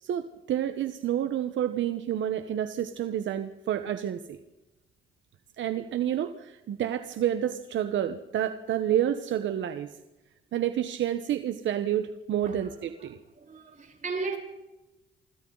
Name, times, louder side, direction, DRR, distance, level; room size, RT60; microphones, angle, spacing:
voice 1, 0.0-4.2 5.6-9.9 10.5-13.2, right 10 dB, 70° right, 1.2 m, -29 dB
voice 2, 12.4-12.7 13.0-14.4, right 4 dB, 40° right, 6.2 m, -36 dB
27.0 x 25.5 x 4.0 m
cardioid pair, 90°, 20 cm